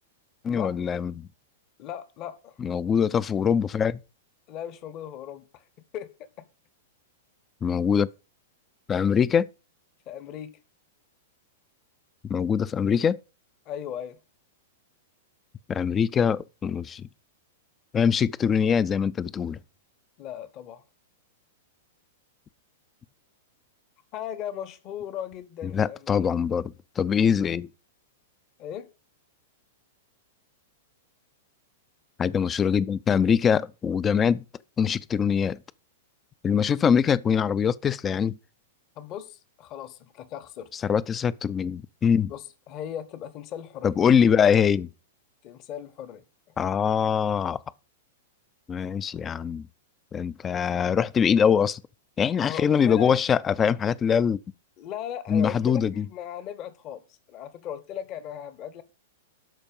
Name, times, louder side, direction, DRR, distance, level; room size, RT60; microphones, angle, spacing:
voice 1, 0.4-1.3 2.6-4.0 7.6-8.1 8.9-9.5 12.2-13.2 15.7-17.1 17.9-19.6 25.7-27.7 32.2-34.4 34.8-35.6 36.4-38.4 40.7-42.3 43.8-44.9 46.6-47.6 48.7-49.7 50.1-51.8 52.2-54.4 55.3-56.0, left 7 dB, 20° left, 0.4 m, -23 dB
voice 2, 1.8-2.6 4.5-5.6 5.9-6.1 6.4-6.5 10.1-10.6 13.7-14.2 20.2-20.8 24.1-26.2 28.6-28.9 39.0-40.7 42.3-44.0 45.4-46.2 50.5-50.7 52.3-53.1 54.8-58.8, left 10 dB, 40° left, 1.0 m, -37 dB
12.5 x 4.4 x 5.2 m
figure-of-eight pair, 100°, 0 cm